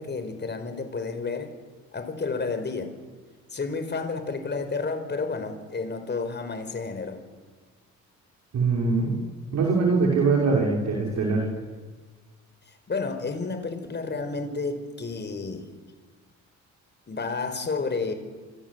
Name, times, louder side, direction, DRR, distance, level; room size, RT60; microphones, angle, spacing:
voice 1, 0.0-1.5 1.9-2.9 3.5-7.2 12.9-15.7 17.1-18.1, left 4 dB, 35° left, 8 dB, 5.1 m, -31 dB
voice 2, 8.5-9.2 9.5-11.5, right 4 dB, 65° right, -1 dB, 5.7 m, -22 dB
27.0 x 26.0 x 8.3 m, 1.4 s
cardioid pair, 90°, 30 cm